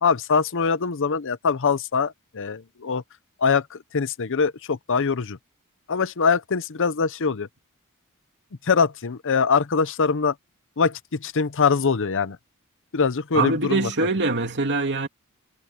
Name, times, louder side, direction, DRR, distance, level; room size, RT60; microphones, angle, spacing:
voice 1, 0.0-3.0 3.4-5.4 5.9-7.5 8.6-10.3 10.8-12.4 12.9-13.9, left 5 dB, 60° left, 0.7 m, -23 dB
voice 2, 13.3-15.1, right 3 dB, 55° right, 3.0 m, -23 dB
head